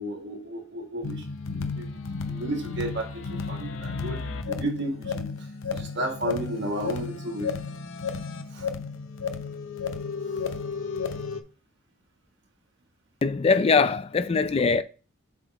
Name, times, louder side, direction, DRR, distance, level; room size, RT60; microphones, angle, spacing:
voice 1, 0.0-2.0 2.3-7.5 8.5-8.7 10.3-10.5, right 1 dB, 60° right, 1.7 m, -33 dB
sound 1, 1.0-11.4, left 5 dB, 70° left, 0.6 m, -33 dB
voice 2, 13.2-14.8, left 4 dB, 30° left, 0.3 m, -22 dB
7.6 x 3.8 x 3.4 m
head